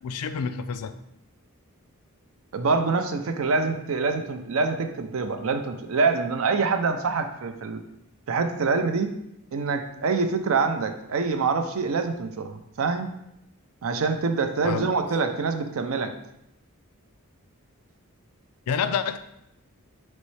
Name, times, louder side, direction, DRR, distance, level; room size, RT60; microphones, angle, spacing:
voice 1, 0.0-0.9 14.6-14.9 18.7-19.2, left 6 dB, 90° left, 11 dB, 0.4 m, -28 dB
voice 2, 2.5-7.8 8.3-9.1 9.5-13.1 13.8-16.1, right 4 dB, 65° right, 7 dB, 0.5 m, -25 dB
5.3 x 3.1 x 3.2 m, 0.81 s
head